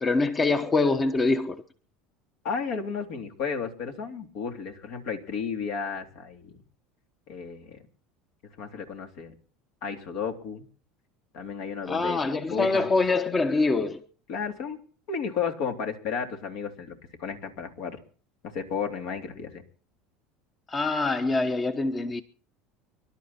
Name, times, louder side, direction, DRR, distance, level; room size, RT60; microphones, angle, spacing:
voice 1, 0.0-1.6 11.9-14.1 20.7-22.2, left 3 dB, 25° left, 1.1 m, -24 dB
voice 2, 2.4-6.5 7.3-7.8 8.6-9.3 9.8-10.6 11.3-12.9 14.3-14.8 15.1-18.0 18.5-19.6, left 6 dB, 65° left, 3.4 m, -33 dB
25.5 x 12.0 x 4.3 m
supercardioid pair, 100°, 0 cm